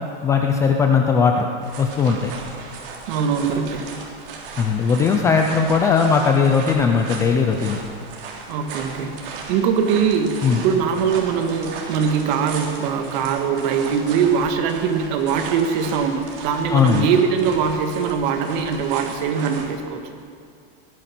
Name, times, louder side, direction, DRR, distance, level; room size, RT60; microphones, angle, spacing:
voice 1, 0.2-1.5 1.8-2.3 4.6-7.8 10.4-10.6 16.7-17.1, left 5 dB, 10° left, 3 dB, 0.3 m, -18 dB
sound 1, 1.6-19.7, right 4 dB, 65° right, 3.4 m, -36 dB
voice 2, 3.1-3.9 8.5-9.1 9.5-10.3 10.6-20.0, right 6 dB, 45° right, 5 dB, 1.8 m, -21 dB
18.5 x 12.5 x 6.0 m, 2.3 s
supercardioid pair, 165°, 30 cm